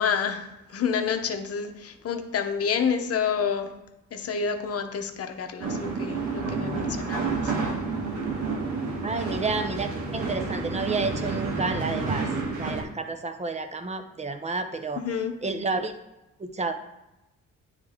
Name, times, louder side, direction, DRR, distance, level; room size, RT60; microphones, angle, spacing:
voice 1, 0.0-3.7 4.1-7.5 15.0-15.3, left 6 dB, 50° left, 7 dB, 0.8 m, -29 dB
sound 1, 5.6-12.8, right 4 dB, 75° right, 1.4 m, -30 dB
voice 2, 9.0-12.3 12.6-15.0 15.4-15.9 16.4-16.7, right 3 dB, 20° right, 8 dB, 0.6 m, -30 dB
9.4 x 3.2 x 3.6 m, 0.95 s
cardioid pair, 90°, 30 cm